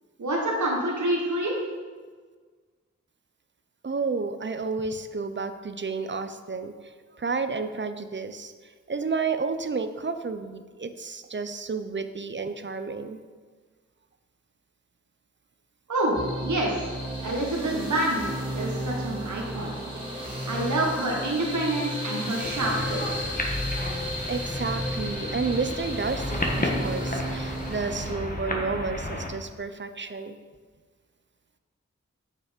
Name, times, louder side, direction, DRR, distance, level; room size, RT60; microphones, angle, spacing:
voice 1, 0.2-1.6 15.9-16.8 17.2-18.2 18.5-19.8 20.5-23.0, right 1 dB, 85° right, -2 dB, 1.4 m, -27 dB
voice 2, 3.8-8.5 8.9-13.2 24.3-30.4, right 4 dB, 40° right, 9 dB, 0.5 m, -31 dB
sound 1, 16.1-28.1, equal, 15° right, 2.0 m, -33 dB
sound 2, 22.4-29.3, left 1 dB, 30° left, 1.3 m, -32 dB
6.7 x 5.9 x 5.1 m, 1.5 s
wide cardioid pair, 80°, 29 cm